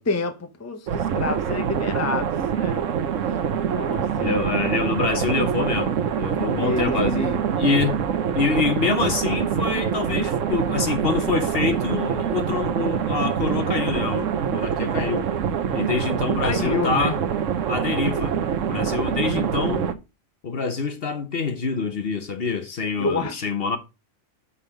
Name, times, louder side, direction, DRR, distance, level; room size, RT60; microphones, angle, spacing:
voice 1, 0.0-2.8 3.7-4.4 6.6-7.4 16.4-17.2 23.0-23.5, left 3 dB, 15° left, 0.7 m, -28 dB
sound 1, 0.9-19.9, right 8 dB, 70° right, 1.1 m, -25 dB
voice 2, 4.2-8.0 8.3-15.3 15.7-17.2 17.6-18.3 18.7-19.9 20.4-23.8, left 4 dB, 50° left, 1.1 m, -26 dB
5.6 x 5.2 x 6.4 m
omnidirectional pair, 1.4 m